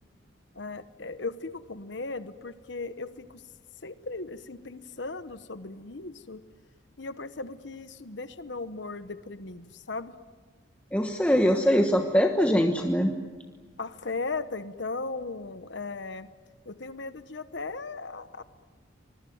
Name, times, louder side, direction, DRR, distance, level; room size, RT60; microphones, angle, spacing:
voice 1, 0.5-3.3 3.8-6.4 7.0-10.2 11.7-11.8 13.8-16.3 16.7-18.4, left 3 dB, 65° left, 12 dB, 1.0 m, -37 dB
voice 2, 10.9-13.1, equal, 5° left, 4 dB, 1.2 m, -22 dB
25.0 x 22.0 x 9.4 m, 1.5 s
head